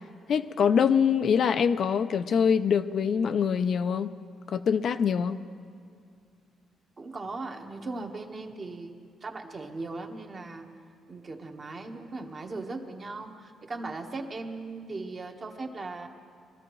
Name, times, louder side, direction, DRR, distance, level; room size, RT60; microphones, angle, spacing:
voice 1, 0.3-4.1 4.5-5.4, left 7 dB, 60° left, 10 dB, 0.4 m, -24 dB
voice 2, 7.0-10.7 11.1-16.1, right 3 dB, 40° right, 3 dB, 1.3 m, -38 dB
22.5 x 13.5 x 3.1 m, 2.3 s
cardioid pair, 90°, 0 cm